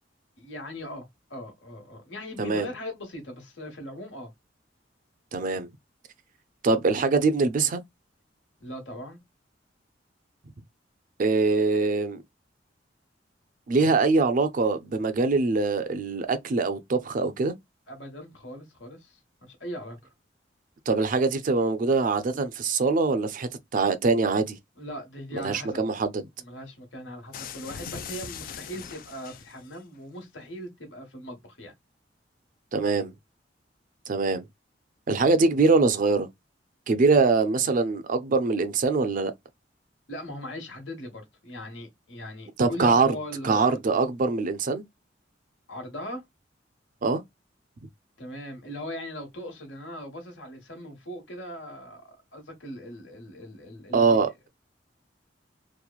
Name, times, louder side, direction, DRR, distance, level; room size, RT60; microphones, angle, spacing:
voice 1, 0.4-4.3 8.6-9.2 17.9-20.0 24.8-25.9 26.4-31.7 40.1-43.8 45.7-46.2 48.2-54.2, equal, 80° left, 1.3 m, -39 dB
voice 2, 5.3-5.7 6.6-7.8 11.2-12.2 13.7-17.5 20.9-24.6 25.3-26.2 32.7-33.1 34.1-34.4 35.1-36.3 36.9-39.3 42.6-43.1 43.4-44.8 47.0-47.2 53.9-54.5, right 4 dB, 45° right, 0.4 m, -23 dB
sound 1, 27.3-29.8, left 7 dB, 50° left, 0.4 m, -40 dB
3.0 x 2.1 x 2.3 m
head